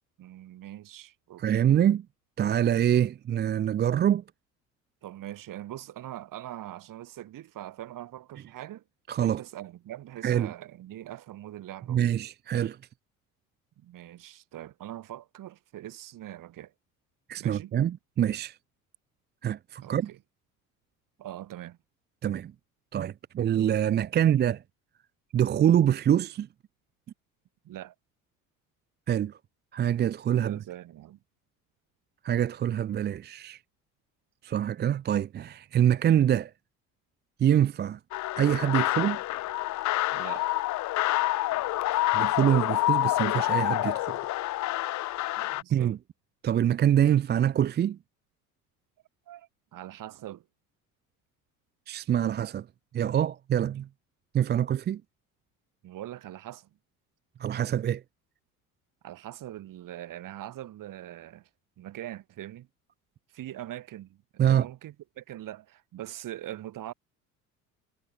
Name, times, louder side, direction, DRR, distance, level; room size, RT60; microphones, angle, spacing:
voice 1, 0.2-1.8 5.0-8.8 9.2-12.1 13.8-16.7 17.4-17.7 19.8-20.2 21.2-21.8 27.6-27.9 30.4-31.2 40.1-40.5 45.4-45.9 49.3-50.5 55.8-56.7 59.0-61.5 61.8-62.7 63.3-66.9, right 13 dB, 45° right, 4.0 m, -42 dB
voice 2, 1.4-2.0 2.4-4.2 9.1-9.4 10.2-10.5 11.9-12.8 17.3-18.6 19.4-20.1 22.2-22.5 22.9-24.6 25.3-26.5 29.1-29.4 29.7-30.6 32.2-33.6 34.4-36.5 37.4-38.0 38.4-39.2 42.1-44.2 45.7-46.0 46.4-48.0 51.9-52.7 52.9-53.9 54.3-55.0 57.4-58.0 64.4-64.7, right 10 dB, 25° right, 0.6 m, -25 dB
sound 1, 38.1-45.6, left 17 dB, 40° left, 0.8 m, -27 dB
figure-of-eight pair, 60°, 44 cm